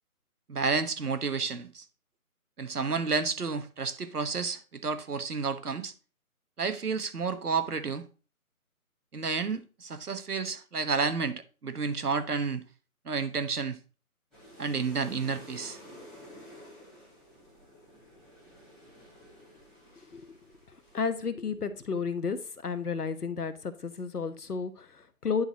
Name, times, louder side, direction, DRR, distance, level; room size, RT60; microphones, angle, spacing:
voice 1, 0.5-1.8 2.6-5.9 6.6-8.0 9.1-12.6 13.0-13.8 14.6-15.8, right 5 dB, 85° right, 1.2 m, -31 dB
sound 1, 14.3-21.1, left 1 dB, ahead, 1.2 m, -51 dB
voice 2, 20.1-20.4 20.9-25.4, left 5 dB, 90° left, 1.1 m, -32 dB
10.0 x 4.1 x 4.1 m
figure-of-eight pair, 160°, 44 cm